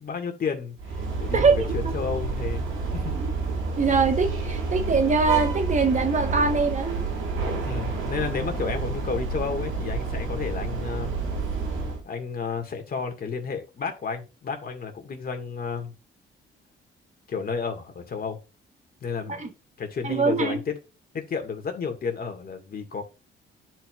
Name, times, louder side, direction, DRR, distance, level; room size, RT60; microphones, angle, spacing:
voice 1, 0.0-2.7 2.9-3.1 7.6-11.1 12.0-15.9 17.3-18.4 19.0-19.5 19.8-20.7 21.1-23.0, left 5 dB, 50° left, 1.8 m, -32 dB
sound 1, 0.8-12.0, right 3 dB, 80° right, 1.9 m, -29 dB
voice 2, 1.3-1.9 3.1-3.3 3.8-7.0 19.3-19.5 20.0-20.6, right 4 dB, 40° right, 1.2 m, -23 dB
10.5 x 4.6 x 2.4 m
cardioid pair, 90°, 20 cm